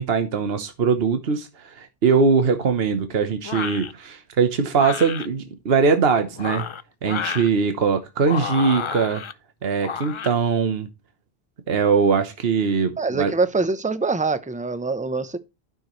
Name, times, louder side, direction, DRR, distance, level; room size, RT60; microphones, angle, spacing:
voice 1, 0.0-6.7 7.0-9.2 9.6-10.9 11.7-13.3, right 5 dB, 70° right, 1.3 m, -21 dB
sound 1, 3.4-3.9 4.7-5.3 6.3-7.5 8.2-9.3 9.8-10.3, left 6 dB, 45° left, 0.4 m, -31 dB
voice 2, 13.0-15.4, right 3 dB, 10° right, 0.7 m, -24 dB
12.0 x 6.3 x 3.1 m
omnidirectional pair, 1.0 m